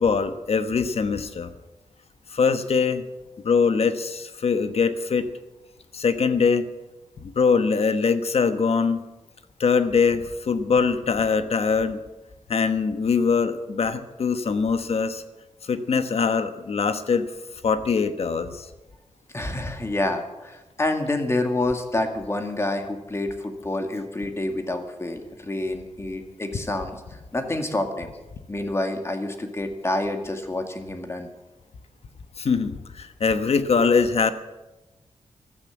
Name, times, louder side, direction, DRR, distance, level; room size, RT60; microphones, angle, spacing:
voice 1, 0.0-1.5 2.3-3.0 3.4-5.3 5.9-6.7 7.2-9.0 9.6-12.0 12.5-15.2 15.6-17.3 17.6-18.7 32.4-34.3, left 5 dB, 55° left, 10 dB, 1.2 m, -22 dB
voice 2, 19.3-27.0 27.3-28.1 28.5-31.3, left 2 dB, 20° left, 5 dB, 2.0 m, -28 dB
15.0 x 13.0 x 7.2 m, 1.0 s
wide cardioid pair, 135°, 12 cm